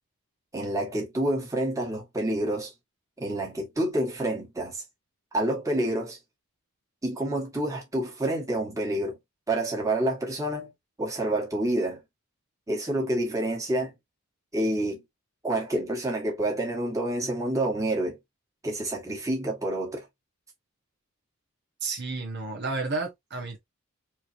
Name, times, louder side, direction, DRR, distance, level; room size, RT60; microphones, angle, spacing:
voice 1, 0.5-2.7 3.2-4.8 5.3-6.2 7.0-9.2 9.5-10.7 11.0-12.0 12.7-13.9 14.5-15.0 15.4-18.2 18.6-20.0, right 1 dB, 15° right, 1.8 m, -28 dB
voice 2, 21.8-23.6, right 3 dB, 50° right, 1.2 m, -31 dB
4.5 x 3.1 x 2.8 m
head